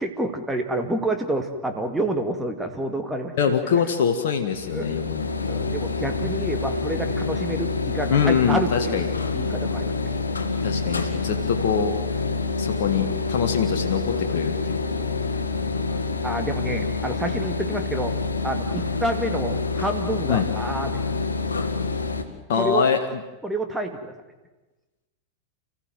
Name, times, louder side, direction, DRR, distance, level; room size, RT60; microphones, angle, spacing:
voice 1, 0.0-3.3 4.7-5.0 5.4-9.0 9.3-10.1 14.1-14.2 15.0-15.1 15.8-18.1 18.4-21.0 22.6-22.8 23.4-24.1, right 1 dB, 10° right, 4 dB, 2.3 m, -28 dB
voice 2, 3.4-5.3 8.1-9.1 10.6-12.0 12.6-14.8 20.3-20.5 22.5-23.0, left 7 dB, 55° left, 4 dB, 1.9 m, -23 dB
sound 1, 4.5-22.2, left 4 dB, 75° left, 2.0 m, -27 dB
29.5 x 15.5 x 9.3 m, 1.1 s
figure-of-eight pair, 90°, 0 cm